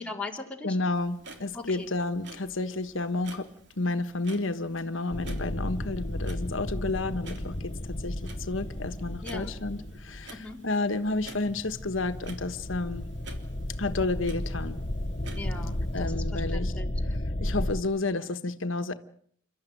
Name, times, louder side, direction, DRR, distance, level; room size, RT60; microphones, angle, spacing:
voice 1, 0.0-0.8 1.5-1.9 9.2-9.6 10.3-10.6 15.3-16.9, left 3 dB, 5° left, 0 dB, 3.4 m, -39 dB
voice 2, 0.6-3.5 3.8-13.0 13.8-14.8 15.9-16.7 17.4-18.9, left 2 dB, 85° left, 9 dB, 1.3 m, -31 dB
Clock, 0.9-16.1, right 3 dB, 60° right, 3.4 m, -51 dB
sound 1, 5.1-10.5 11.0-17.8, left 1 dB, 35° left, 1.2 m, -33 dB
28.5 x 13.0 x 9.2 m, 0.63 s
head